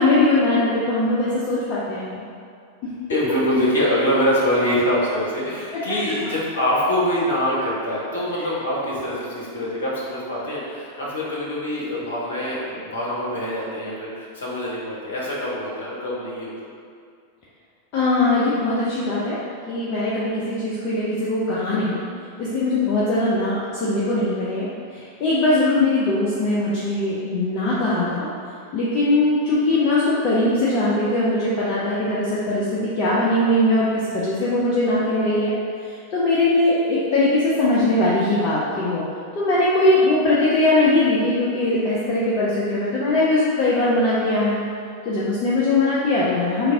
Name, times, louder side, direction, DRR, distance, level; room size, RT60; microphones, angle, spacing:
voice 1, 0.0-2.3 2.8-2.9 5.7-5.8 8.4-8.5 17.9-22.0 22.4-28.3 28.7-35.5 35.8-39.0 39.4-44.6 45.1-46.7, left 2 dB, 40° left, -8 dB, 0.5 m, -21 dB
voice 2, 3.1-16.5, equal, 65° left, -6 dB, 0.8 m, -24 dB
3.2 x 2.5 x 3.6 m, 2.3 s
figure-of-eight pair, 90°, 0 cm